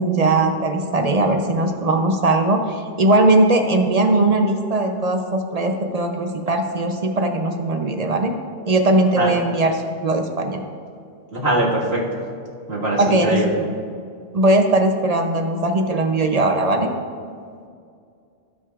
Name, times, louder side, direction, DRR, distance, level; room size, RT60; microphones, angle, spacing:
voice 1, 0.0-8.3 8.7-10.6 13.0-13.7 14.3-16.9, right 2 dB, 45° right, 4 dB, 0.6 m, -19 dB
voice 2, 11.3-12.0 12.7-13.5, right 1 dB, 75° right, -4 dB, 1.9 m, -21 dB
17.5 x 5.9 x 2.4 m, 2.3 s
omnidirectional pair, 1.1 m